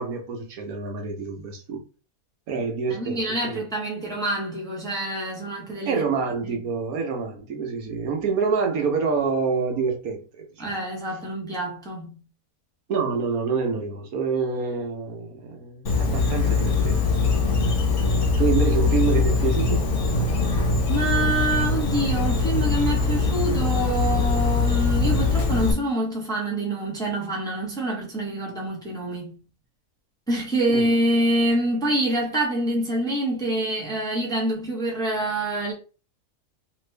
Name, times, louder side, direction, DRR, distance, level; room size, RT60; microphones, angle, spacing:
voice 1, 0.0-1.8 2.5-3.6 5.9-10.2 10.5-10.7 12.9-17.0 18.4-19.9 30.7-30.9, right 5 dB, 75° right, 1.2 m, -27 dB
voice 2, 2.9-6.0 6.4-6.6 10.6-12.2 17.5-18.0 20.9-29.4 30.3-35.7, right 1 dB, 5° left, 0.8 m, -26 dB
Insect, 15.9-25.7, left 3 dB, 60° left, 1.2 m, -22 dB
3.0 x 2.5 x 3.2 m
omnidirectional pair, 1.6 m